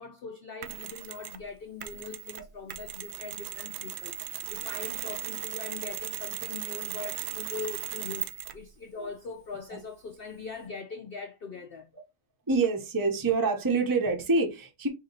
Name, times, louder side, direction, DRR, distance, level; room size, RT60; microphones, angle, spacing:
voice 1, 0.0-11.9, left 5 dB, 80° left, 0.5 m, -41 dB
Mechanisms, 0.6-1.4 1.8-8.7, right 13 dB, 80° right, 1.1 m, -37 dB
voice 2, 12.5-14.9, right 3 dB, 30° right, 0.4 m, -26 dB
4.8 x 2.6 x 3.9 m
omnidirectional pair, 1.7 m